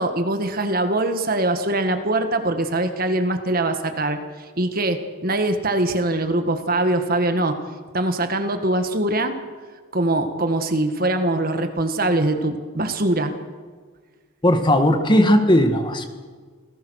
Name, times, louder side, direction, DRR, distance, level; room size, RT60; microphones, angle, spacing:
voice 1, 0.0-7.6 7.9-9.3 9.9-13.3, right 2 dB, 45° right, 7 dB, 1.8 m, -22 dB
voice 2, 14.4-16.1, left 1 dB, 20° left, 6 dB, 1.7 m, -17 dB
28.0 x 17.5 x 6.5 m, 1.5 s
head